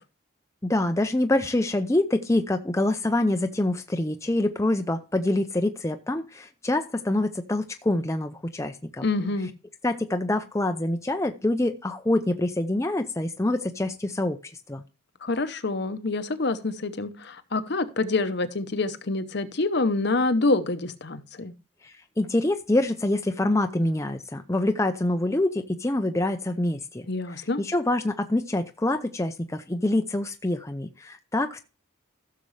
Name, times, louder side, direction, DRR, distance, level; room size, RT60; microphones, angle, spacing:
voice 1, 0.6-9.0 9.8-14.8 21.8-27.1 27.3-31.6, left 1 dB, 15° left, 6 dB, 0.6 m, -26 dB
voice 2, 9.0-9.5 15.2-21.5 27.1-27.6, left 3 dB, 55° left, 11 dB, 0.9 m, -26 dB
15.0 x 6.8 x 3.2 m, 0.31 s
head